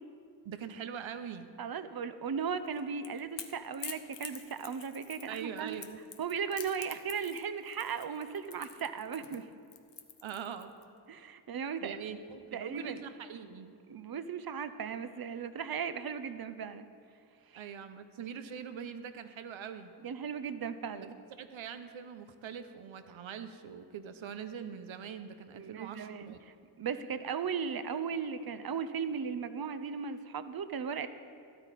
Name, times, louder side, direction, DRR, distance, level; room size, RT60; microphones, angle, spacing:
voice 1, 0.4-1.5 5.3-6.0 10.2-10.7 11.8-13.8 17.5-19.9 21.4-26.4, right 7 dB, 85° right, 10 dB, 0.8 m, -43 dB
voice 2, 1.6-5.8 6.2-9.5 11.1-12.0 12.5-13.0 13.9-16.9 17.5-17.6 20.0-21.1 25.6-31.1, right 6 dB, 50° right, 12 dB, 0.7 m, -37 dB
Crackle / Crack, 2.7-10.8, left 8 dB, 65° left, 0.9 m, -47 dB
13.0 x 12.0 x 4.1 m, 2.3 s
cardioid pair, 70°, 46 cm